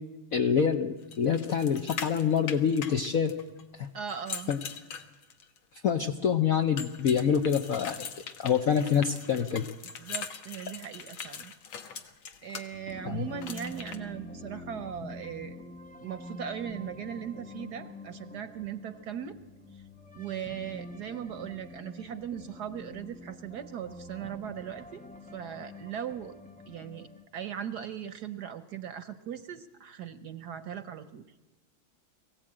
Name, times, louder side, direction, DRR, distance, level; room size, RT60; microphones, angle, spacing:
voice 1, 0.3-3.3 3.7-3.9 4.5-4.6 5.8-8.1 8.4-9.6 13.0-13.3, left 7 dB, 55° left, 4 dB, 1.1 m, -26 dB
sound 1, 1.1-3.6 4.1-5.6 6.8-12.6 13.4-14.0, left 6 dB, 75° left, 2.1 m, -41 dB
voice 2, 3.9-4.5 10.0-11.5 12.4-15.5 16.0-19.4 20.1-25.0 25.3-26.3 26.7-27.1 27.3-31.2, right 9 dB, 60° right, 11 dB, 1.2 m, -39 dB
sound 2, 12.7-27.2, left 2 dB, 10° left, 0.4 m, -46 dB
22.5 x 16.0 x 8.8 m, 1.1 s
omnidirectional pair, 2.2 m